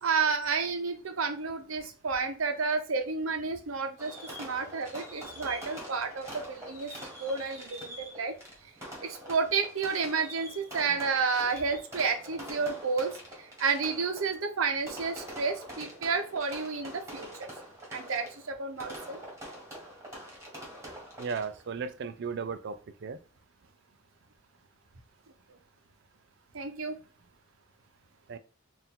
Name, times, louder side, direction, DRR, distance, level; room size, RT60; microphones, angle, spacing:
voice 1, 0.0-6.9 7.2-8.3 9.0-17.5 17.9-19.2 26.5-27.0, right 5 dB, 80° right, 0.8 m, -31 dB
Fireworks, 4.0-21.8, equal, 15° right, 1.5 m, -45 dB
voice 2, 21.2-23.2 28.3-28.4, right 5 dB, 55° right, 0.4 m, -35 dB
4.4 x 2.5 x 3.7 m
head